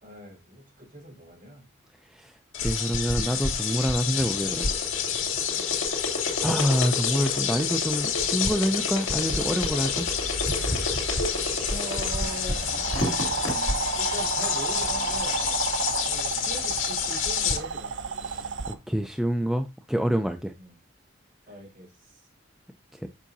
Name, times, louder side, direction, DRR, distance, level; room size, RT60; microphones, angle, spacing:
voice 1, 0.0-1.6 5.5-5.8 11.7-12.8 13.8-15.4 16.0-17.9 20.6-20.7 21.5-22.3, equal, 45° right, 4.6 m, -41 dB
voice 2, 2.1-4.8 5.6-6.0 6.4-10.1 18.2-20.5 22.9-23.1, equal, ahead, 0.4 m, -27 dB
sound 1, 2.5-17.6, left 7 dB, 85° left, 2.3 m, -28 dB
sound 2, 4.1-12.4 12.8-13.5, left 1 dB, 70° left, 2.7 m, -30 dB
sound 3, 9.2-18.8, right 4 dB, 65° right, 0.7 m, -32 dB
7.4 x 5.5 x 2.7 m
head